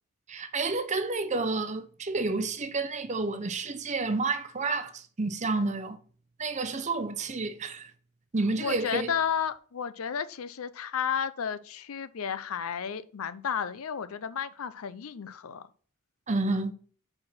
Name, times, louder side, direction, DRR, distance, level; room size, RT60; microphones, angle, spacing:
voice 1, 0.3-6.0 6.4-7.9 8.3-9.1 16.3-16.7, right 3 dB, 35° right, 0.6 m, -30 dB
voice 2, 8.6-15.6, left 7 dB, 75° left, 0.5 m, -32 dB
4.9 x 4.3 x 6.0 m
head